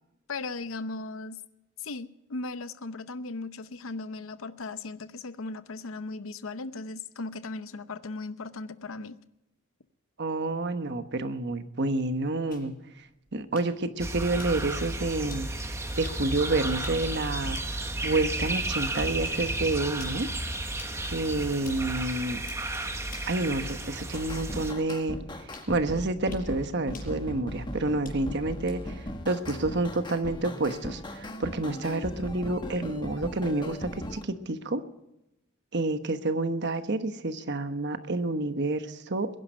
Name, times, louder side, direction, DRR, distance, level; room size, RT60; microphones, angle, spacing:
voice 1, 0.3-1.4 1.8-9.2, left 3 dB, 80° left, 0.8 m, -37 dB
voice 2, 10.2-12.7 13.3-20.3 21.1-22.4 23.3-25.2 25.7-34.8 35.7-39.3, right 2 dB, 55° right, 1.2 m, -29 dB
sound 1, 12.5-29.9, left 4 dB, 40° left, 5.6 m, -54 dB
sound 2, 14.0-24.7, right 1 dB, 15° right, 1.1 m, -33 dB
sound 3, 24.1-34.2, left 1 dB, 20° left, 1.4 m, -38 dB
21.5 x 11.0 x 5.4 m
head